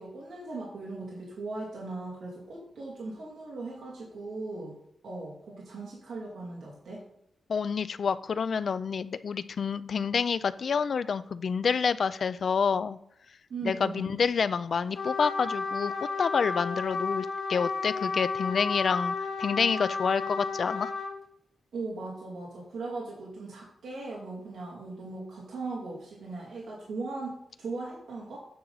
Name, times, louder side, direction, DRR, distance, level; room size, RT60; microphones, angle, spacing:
voice 1, 0.0-4.8 5.0-7.0 13.5-14.1 21.7-28.4, right 3 dB, 75° right, -4 dB, 2.6 m, -38 dB
voice 2, 7.5-13.0 13.6-15.9 16.2-20.9, left 6 dB, 50° left, 14 dB, 0.4 m, -28 dB
Trumpet, 14.9-21.2, left 4 dB, 80° left, 1.4 m, -32 dB
9.5 x 7.3 x 4.0 m, 0.76 s
wide cardioid pair, 180°, 0 cm